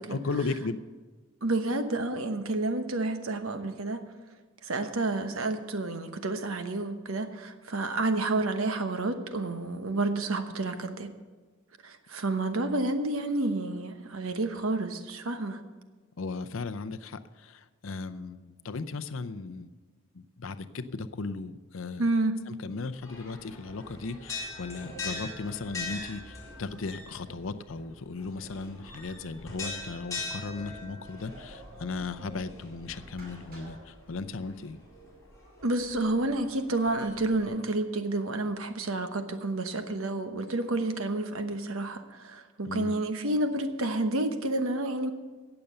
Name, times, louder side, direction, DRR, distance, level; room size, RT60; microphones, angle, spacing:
voice 1, 0.1-0.8 16.2-19.7 20.1-22.0 22.5-34.8 42.7-42.9, left 3 dB, 65° left, 11 dB, 0.6 m, -36 dB
voice 2, 1.4-4.0 4.6-11.1 11.8-15.6 22.0-22.4 35.6-45.1, right 2 dB, 75° right, 8 dB, 1.1 m, -30 dB
sound 1, 23.0-37.4, left 3 dB, 15° left, 4.1 m, -42 dB
sound 2, 28.2-28.7 29.4-30.0 30.4-30.9 31.2-32.4 33.1-33.8, right 1 dB, 45° right, 5.3 m, -50 dB
17.5 x 6.9 x 6.7 m, 1.4 s
head